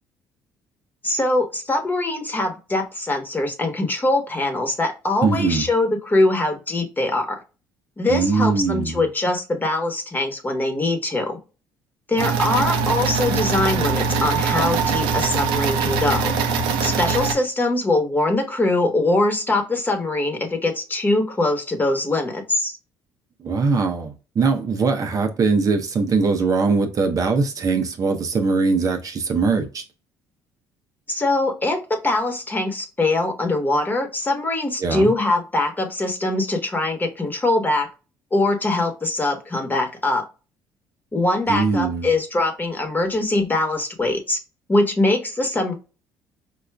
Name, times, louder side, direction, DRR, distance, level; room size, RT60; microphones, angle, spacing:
voice 1, 1.0-7.4 8.0-11.4 12.1-16.3 16.8-22.8 31.1-37.9 38.3-40.2 41.1-44.4 44.7-45.7, left 2 dB, 20° left, 1.1 m, -22 dB
voice 2, 5.2-5.6 8.1-9.0 23.4-29.8 34.8-35.1 41.5-42.1, right 4 dB, 45° right, 0.7 m, -21 dB
sound 1, 12.2-17.3, right 5 dB, 80° right, 0.6 m, -22 dB
4.7 x 2.4 x 2.2 m
supercardioid pair, 70°, 8 cm